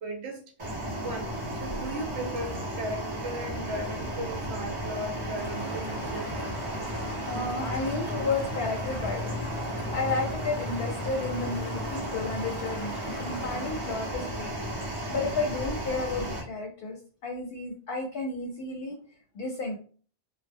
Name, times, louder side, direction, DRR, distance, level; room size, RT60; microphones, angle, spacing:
voice 1, 0.0-6.6, right 1 dB, 80° right, 0.8 m, -37 dB
sound 1, 0.6-16.4, equal, 30° right, 0.8 m, -34 dB
sound 2, 5.3-14.4, equal, 10° left, 0.7 m, -43 dB
voice 2, 7.0-14.5 15.1-19.0 19.3-19.8, left 3 dB, 65° left, 0.7 m, -32 dB
2.1 x 2.0 x 3.4 m
omnidirectional pair, 1.1 m